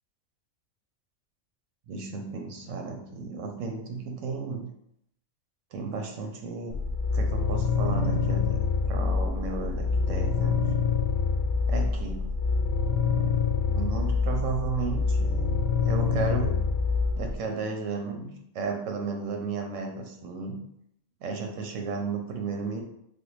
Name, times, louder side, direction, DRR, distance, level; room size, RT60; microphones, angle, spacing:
voice 1, 1.9-4.7 5.7-6.7 7.1-10.6 11.7-12.3 13.7-16.6 17.2-20.6 21.2-22.8, right 4 dB, 90° right, 3 dB, 1.0 m, -34 dB
sound 1, 6.7-17.4, left 4 dB, 70° left, 0.8 m, -26 dB
3.4 x 2.2 x 3.1 m, 0.75 s
omnidirectional pair, 1.3 m